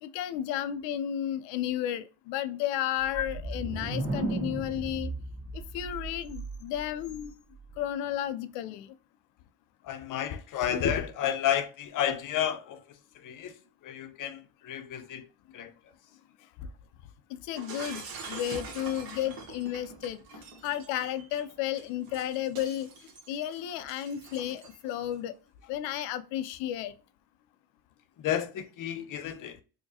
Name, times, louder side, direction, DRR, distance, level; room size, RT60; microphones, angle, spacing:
voice 1, 0.0-5.1 5.5-7.4 7.8-8.9 17.3-18.0 18.3-22.9 23.3-25.3 25.7-26.9, left 11 dB, 90° left, 0.6 m, -33 dB
sound 1, 3.0-6.8, right 3 dB, 30° right, 1.5 m, -35 dB
voice 2, 9.8-12.8 13.2-15.3 15.5-15.7 28.2-29.6, left 9 dB, 45° left, 0.7 m, -31 dB
Shatter, 17.6-24.9, right 4 dB, 50° right, 1.2 m, -45 dB
4.7 x 2.2 x 2.7 m
supercardioid pair, 95°, 44 cm